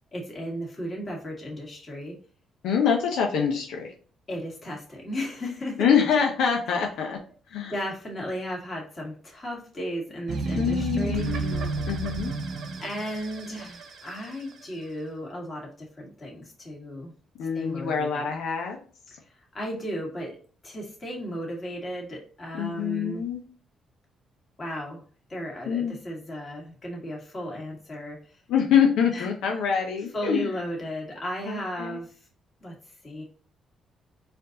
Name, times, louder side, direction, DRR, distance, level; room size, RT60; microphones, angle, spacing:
voice 1, 0.1-2.2 4.3-5.9 7.7-11.3 12.8-17.1 17.5-18.2 19.3-20.4 20.6-23.2 24.6-25.0 25.3-28.4 29.1-29.3 30.1-32.1 32.6-32.7 33.0-33.2, equal, 30° left, -2 dB, 2.0 m, -35 dB
voice 2, 2.6-3.9 5.8-7.2 7.5-7.7 10.5-12.3 17.4-18.8 22.5-23.4 25.6-26.0 28.5-30.5 31.5-32.0, left 7 dB, 85° left, 2 dB, 0.7 m, -25 dB
sound 1, 10.3-14.6, right 3 dB, 70° right, 0.8 m, -31 dB
4.3 x 2.6 x 3.9 m, 0.41 s
cardioid pair, 90°, 0 cm